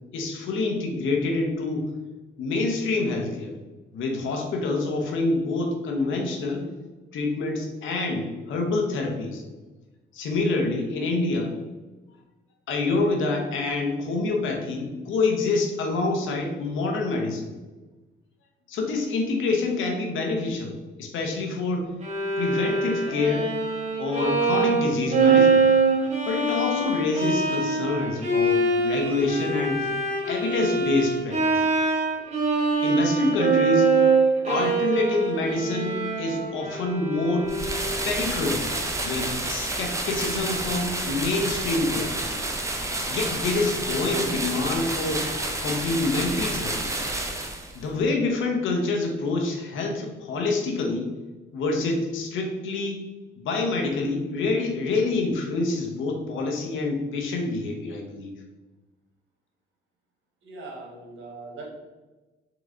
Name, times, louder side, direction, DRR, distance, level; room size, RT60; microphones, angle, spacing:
voice 1, 0.1-1.9 2.4-3.5 3.9-6.7 7.1-9.4 10.1-11.5 12.7-17.5 18.7-21.9 22.4-23.5 24.0-25.7 26.3-29.9 30.3-31.6 32.8-33.9 34.5-37.5 38.0-38.7 39.0-42.4 43.1-45.3 45.6-47.0 47.7-51.1 51.5-53.0 53.4-58.3, left 3 dB, 80° left, 2 dB, 0.9 m, -27 dB
Bowed string instrument, 22.0-38.1, right 3 dB, 35° right, 1.1 m, -24 dB
sound 1, 37.5-47.9, right 2 dB, 15° right, 0.6 m, -29 dB
voice 2, 60.4-61.6, right 3 dB, 75° right, -1 dB, 1.3 m, -40 dB
3.8 x 3.1 x 3.7 m, 1.2 s
cardioid pair, 90°, 20 cm